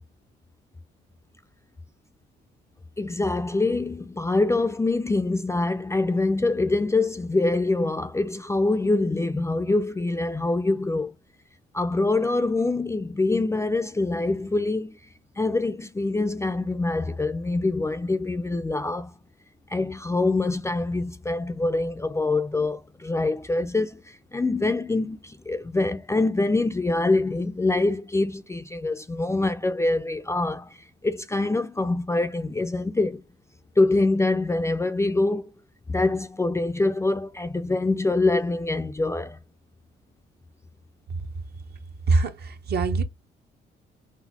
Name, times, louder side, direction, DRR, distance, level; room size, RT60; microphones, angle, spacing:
voice 1, 3.0-11.1 11.7-15.0 15.4-19.1 19.7-33.2 33.8-35.5 35.9-39.4, left 2 dB, 15° left, 0.4 m, -25 dB
voice 2, 42.1-43.0, right 3 dB, 55° right, 0.7 m, -23 dB
4.0 x 2.0 x 2.7 m
cardioid pair, 90°, 20 cm